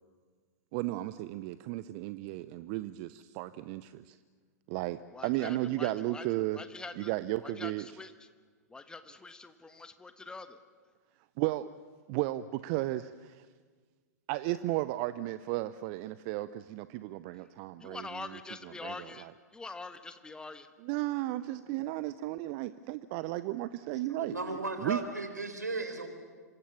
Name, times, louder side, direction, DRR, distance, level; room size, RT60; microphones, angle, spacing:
voice 1, 0.7-4.2 4.7-6.6 7.0-8.0 11.4-11.7 12.1-13.5 14.3-19.3 20.8-25.0, right 16 dB, 40° right, 15 dB, 0.7 m, -34 dB
voice 2, 5.1-6.2 6.5-7.1 7.4-8.1 8.7-10.6 17.8-19.3 19.5-20.7, left 3 dB, 10° left, 10 dB, 1.2 m, -44 dB
voice 3, 23.9-26.1, right 2 dB, 80° right, 7 dB, 4.1 m, -36 dB
27.5 x 24.5 x 7.2 m, 1.5 s
figure-of-eight pair, 100°, 9 cm